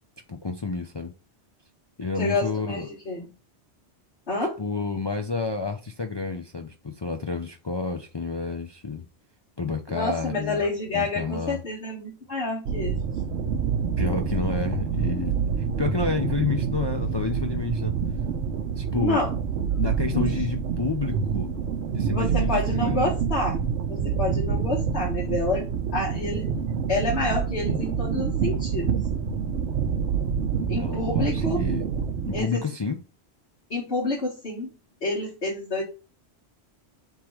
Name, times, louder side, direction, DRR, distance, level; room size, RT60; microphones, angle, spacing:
voice 1, 0.3-1.1 2.0-2.9 4.6-9.1 9.6-10.6 10.9-11.6 14.0-17.9 18.8-19.2 19.8-21.5 21.9-23.0 30.6-31.8 32.2-33.0, left 4 dB, 40° left, 0.3 m, -30 dB
voice 2, 2.1-3.3 4.3-4.6 9.9-13.0 18.9-19.3 20.1-20.4 22.1-23.6 23.9-26.5 26.9-29.0 30.7-31.6 32.3-32.6 33.7-34.7 35.0-35.8, left 2 dB, 65° left, 1.9 m, -28 dB
sound 1, 12.7-32.4, right 6 dB, 80° right, 1.0 m, -27 dB
3.6 x 3.0 x 4.4 m
omnidirectional pair, 1.2 m